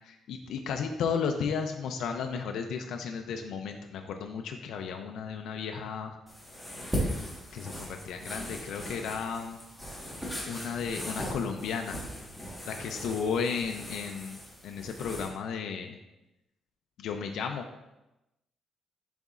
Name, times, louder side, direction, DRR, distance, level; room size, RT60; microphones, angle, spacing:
voice 1, 0.0-6.2 7.5-9.6 10.5-12.0 12.7-14.4 14.6-16.0 17.0-17.8, left 6 dB, 80° left, 4 dB, 0.5 m, -34 dB
sound 1, 6.3-15.3, equal, ahead, 1.4 m, -38 dB
10.5 x 4.1 x 2.5 m, 0.95 s
cardioid pair, 155°, 0 cm